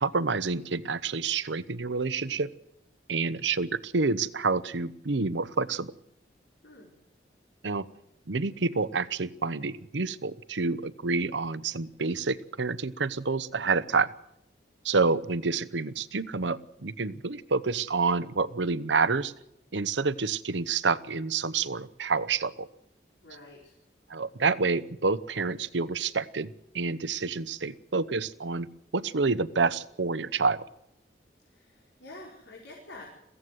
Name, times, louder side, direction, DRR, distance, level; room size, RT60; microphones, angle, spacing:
voice 1, 0.0-2.5 3.1-5.9 7.6-7.9 8.3-14.1 14.8-19.3 19.7-22.7 24.1-26.5 26.7-28.7 28.9-30.6, right 4 dB, 90° right, 16 dB, 0.9 m, -28 dB
voice 2, 23.2-23.7 31.4-33.0, left 2 dB, 85° left, -2 dB, 5.1 m, -48 dB
22.5 x 16.0 x 8.0 m, 0.80 s
head